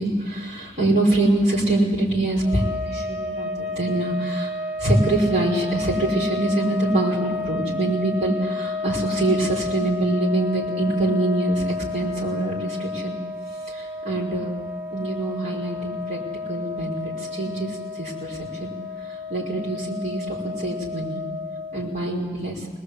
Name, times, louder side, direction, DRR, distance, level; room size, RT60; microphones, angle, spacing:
voice 1, 0.0-4.5 4.8-13.2 13.6-14.6 14.9-16.2 16.5-18.7 19.0-21.2 21.7-22.7, right 2 dB, 40° right, -4 dB, 5.2 m, -24 dB
sound 1, 2.4-22.0, left 3 dB, 10° right, 1.7 m, -31 dB
26.0 x 20.5 x 8.3 m, 1.4 s
head